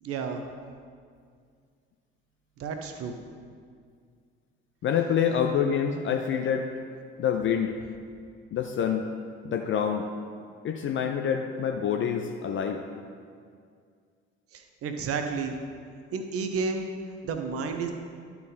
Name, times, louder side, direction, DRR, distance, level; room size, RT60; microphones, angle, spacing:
voice 1, 0.0-0.4 2.6-3.2 14.5-15.6 16.1-16.9 17.2-17.9, right 5 dB, 45° right, 6 dB, 0.9 m, -31 dB
voice 2, 4.8-6.7 7.2-7.8 8.5-9.1 9.4-10.1 10.6-12.8, left 8 dB, 35° left, 5 dB, 0.5 m, -26 dB
11.0 x 4.6 x 5.3 m, 2.2 s
figure-of-eight pair, 50°, 33 cm